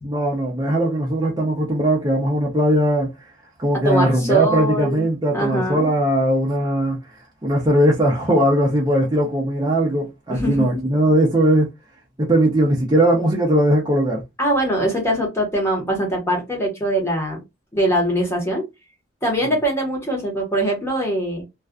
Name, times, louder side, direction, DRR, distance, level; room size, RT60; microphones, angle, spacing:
voice 1, 0.0-3.3 3.6-7.2 7.4-11.7 12.2-14.2 19.4-19.5, right 1 dB, 20° right, 0.5 m, -19 dB
voice 2, 3.8-5.1 5.3-5.9 10.3-10.8 14.4-17.4 17.7-18.6 19.2-21.4, right 1 dB, 15° left, 0.9 m, -22 dB
2.4 x 2.3 x 2.2 m
head